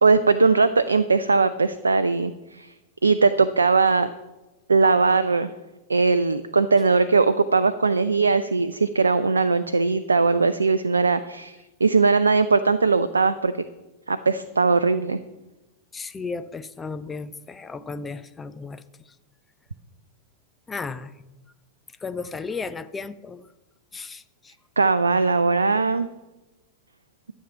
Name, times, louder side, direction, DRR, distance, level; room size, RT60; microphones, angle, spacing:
voice 1, 0.0-2.7 3.0-4.1 4.7-5.5 5.9-13.5 14.1-15.2 24.8-26.1, right 4 dB, 75° right, 12 dB, 0.4 m, -20 dB
voice 2, 15.9-18.8 20.7-21.1 22.0-23.4 23.9-24.5, left 4 dB, 15° left, 12 dB, 0.6 m, -34 dB
12.5 x 7.5 x 5.7 m, 1.1 s
figure-of-eight pair, 90°, 0 cm